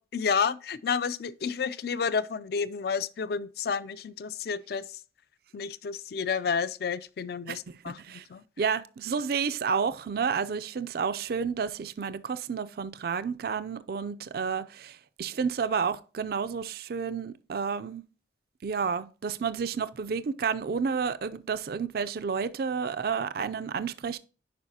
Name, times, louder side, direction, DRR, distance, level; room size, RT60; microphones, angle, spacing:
voice 1, 0.0-4.9 5.5-8.4, left 6 dB, 55° left, 0.4 m, -30 dB
voice 2, 7.9-8.2 8.6-18.0 18.6-24.2, right 6 dB, 55° right, 0.4 m, -30 dB
10.5 x 4.8 x 2.7 m
head